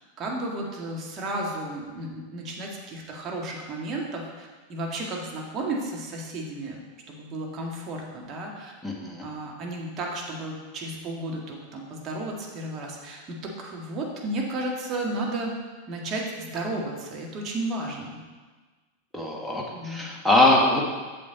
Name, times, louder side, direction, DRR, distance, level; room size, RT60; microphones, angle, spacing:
voice 1, 0.2-6.8 7.1-8.7 9.2-15.5 15.9-18.2 19.7-20.1, right 2 dB, 35° right, -1 dB, 1.8 m, -33 dB
voice 2, 8.8-9.2 19.1-20.9, left 2 dB, ahead, -2 dB, 1.6 m, -22 dB
7.6 x 7.5 x 4.0 m, 1.3 s
figure-of-eight pair, 90°, 0 cm